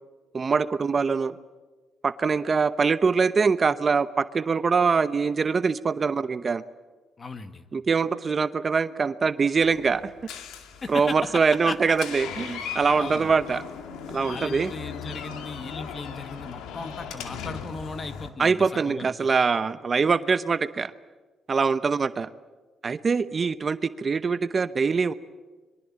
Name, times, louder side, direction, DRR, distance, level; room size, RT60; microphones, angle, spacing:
voice 1, 0.3-1.4 2.0-6.6 7.7-10.1 10.9-13.6 14.1-14.7 18.4-20.9 21.5-22.3 22.8-25.1, right 5 dB, 40° right, 13 dB, 0.9 m, -23 dB
voice 2, 7.2-7.6 10.8-11.8 13.0-13.3 14.3-19.3, left 3 dB, 35° left, 9 dB, 2.0 m, -37 dB
Door, 9.6-18.3, left 7 dB, 90° left, 2.3 m, -38 dB
25.5 x 23.0 x 7.6 m, 1.3 s
cardioid pair, 90°, 0 cm